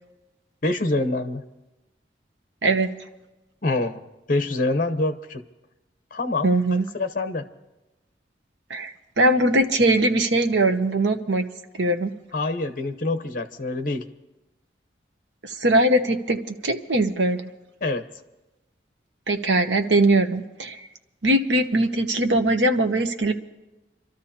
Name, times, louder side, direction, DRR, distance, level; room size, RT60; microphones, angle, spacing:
voice 1, 0.6-1.4 3.6-4.0 4.3-5.4 6.1-6.5 6.9-7.4 12.3-14.1 17.8-18.1, left 2 dB, 50° left, 9 dB, 0.9 m, -25 dB
voice 2, 2.6-2.9 6.4-6.9 8.7-11.5 11.8-12.1 15.4-17.5 19.3-20.8 21.2-23.3, right 1 dB, 90° right, 6 dB, 1.0 m, -21 dB
28.0 x 13.0 x 2.9 m, 1.0 s
head